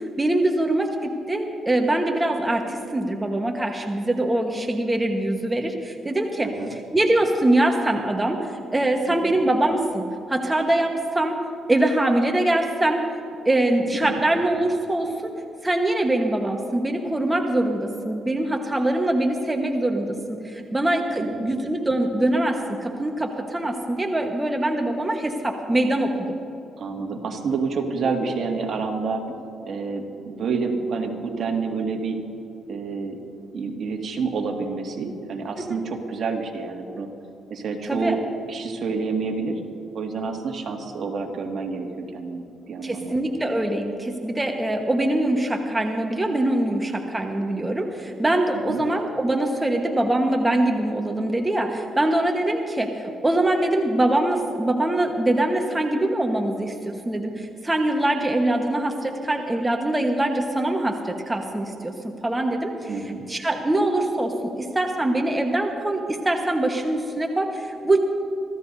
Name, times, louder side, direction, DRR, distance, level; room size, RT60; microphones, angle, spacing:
voice 1, 0.0-11.4 11.7-13.0 13.4-15.3 15.6-26.2 35.6-35.8 37.9-38.2 42.8-61.9 62.2-68.0, right 1 dB, 15° right, 2 dB, 1.2 m, -23 dB
voice 2, 21.2-21.5 26.8-29.2 29.6-32.2 32.7-33.2 33.5-37.1 37.5-38.2 38.5-39.6 39.9-41.9 42.1-43.2 48.7-48.8 62.9-63.2, right 4 dB, 60° right, 2 dB, 2.0 m, -28 dB
25.0 x 15.5 x 2.7 m, 2.8 s
cardioid pair, 90°, 0 cm